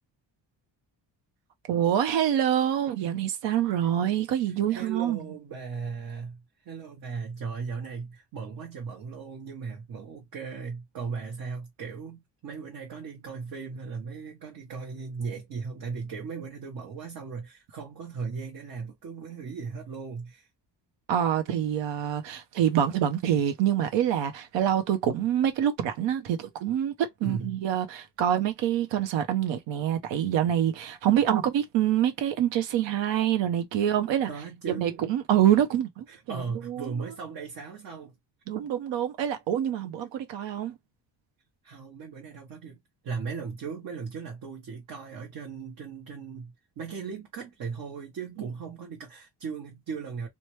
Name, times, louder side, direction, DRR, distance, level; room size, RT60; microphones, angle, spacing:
voice 1, 1.7-5.2 21.1-34.3 34.7-36.9 38.5-40.8, right 10 dB, 80° right, 0.7 m, -26 dB
voice 2, 4.7-20.5 27.2-27.6 34.3-34.9 36.1-38.1 41.6-50.3, right 5 dB, 50° right, 1.0 m, -37 dB
3.2 x 2.2 x 3.0 m
cardioid pair, 170°, 43 cm